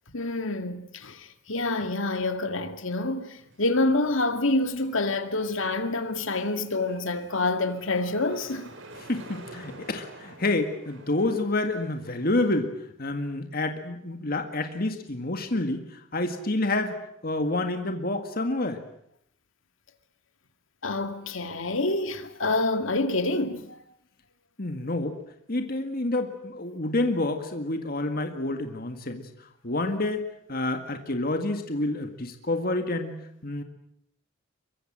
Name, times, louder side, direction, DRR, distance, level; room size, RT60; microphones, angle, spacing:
voice 1, 0.1-8.7 20.8-23.8, left 2 dB, 75° left, 2.2 m, -27 dB
sound 1, 3.4-12.6, right 2 dB, 70° right, 4.8 m, -50 dB
voice 2, 9.1-12.7 13.0-17.0 17.2-18.8 24.6-25.2 25.5-29.3 29.6-33.6, left 2 dB, 45° left, 1.9 m, -28 dB
23.5 x 23.5 x 7.6 m
head